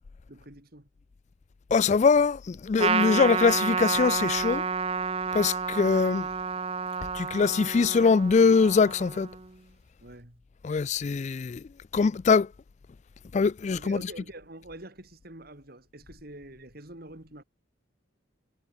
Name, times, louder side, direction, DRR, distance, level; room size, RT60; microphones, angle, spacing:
voice 1, 0.3-0.9 10.0-10.4 13.7-17.4, right 1 dB, 50° right, 3.1 m, -46 dB
voice 2, 1.7-4.6 5.3-6.3 7.1-9.3 10.6-11.6 11.9-12.5 13.3-14.0, left 5 dB, 35° left, 0.3 m, -23 dB
Trumpet, 2.8-9.5, right 5 dB, 30° right, 0.7 m, -30 dB
head